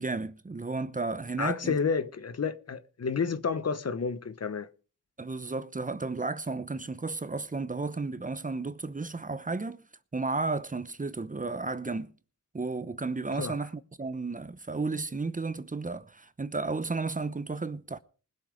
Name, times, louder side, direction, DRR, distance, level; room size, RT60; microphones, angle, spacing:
voice 1, 0.0-1.8 5.2-9.9 10.1-12.1 12.5-18.0, right 3 dB, 25° right, 0.8 m, -33 dB
voice 2, 1.4-4.7 13.3-13.5, left 5 dB, 50° left, 1.0 m, -30 dB
20.0 x 7.6 x 5.1 m
cardioid pair, 65°, 32 cm